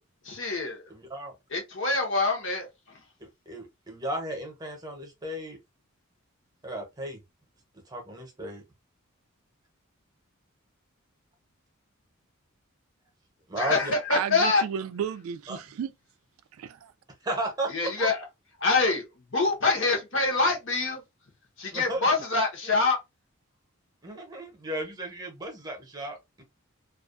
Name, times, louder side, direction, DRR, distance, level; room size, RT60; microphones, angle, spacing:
voice 1, 0.2-0.8 1.5-2.7 13.6-14.6 17.7-18.2 18.6-19.0 19.3-21.0 21.6-23.0, left 3 dB, 60° left, 0.9 m, -25 dB
voice 2, 0.9-1.3 3.2-5.6 6.6-7.2 7.9-8.6 13.5-13.9 15.5-15.6 17.2-18.1 21.7-22.1 24.0-26.4, right 1 dB, 20° right, 0.8 m, -35 dB
voice 3, 14.1-15.9 16.6-16.9, right 8 dB, 80° right, 0.3 m, -33 dB
2.4 x 2.2 x 2.4 m
head